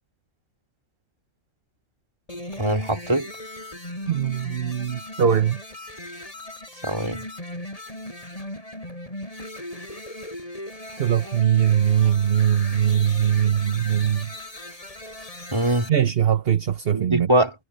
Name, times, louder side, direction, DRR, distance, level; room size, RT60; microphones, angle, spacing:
sound 1, 2.3-15.9, left 1 dB, 25° left, 6.6 m, -38 dB
voice 1, 2.6-3.3 6.8-7.2 15.5-15.9 16.9-17.5, right 1 dB, 20° right, 2.9 m, -22 dB
voice 2, 4.1-5.6 11.0-14.3 15.1-15.3 15.9-17.3, right 9 dB, 50° right, 1.2 m, -21 dB
omnidirectional pair, 1.3 m